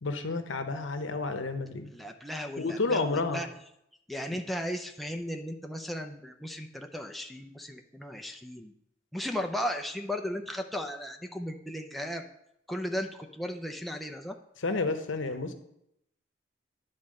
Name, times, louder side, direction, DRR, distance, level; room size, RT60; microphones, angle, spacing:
voice 1, 0.0-1.9 2.6-3.4 14.6-15.5, left 3 dB, 85° left, 8 dB, 0.9 m, -30 dB
voice 2, 1.9-3.5 4.1-8.7 9.1-12.2 12.7-14.4, equal, ahead, 3 dB, 0.5 m, -36 dB
10.0 x 4.2 x 6.4 m, 0.79 s
head